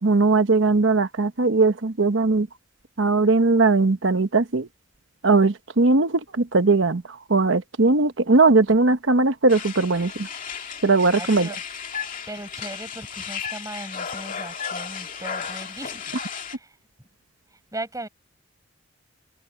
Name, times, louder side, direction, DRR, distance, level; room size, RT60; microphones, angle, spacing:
voice 1, 0.0-2.5 3.0-4.7 5.2-7.0 7.3-10.3 10.8-11.5, right 3 dB, 70° right, 1.0 m, -19 dB
sound 1, 9.5-16.6, left 7 dB, 45° left, 2.3 m, -34 dB
voice 2, 11.1-11.6 12.3-17.1 17.5-18.1, right 2 dB, 15° right, 7.2 m, -38 dB
head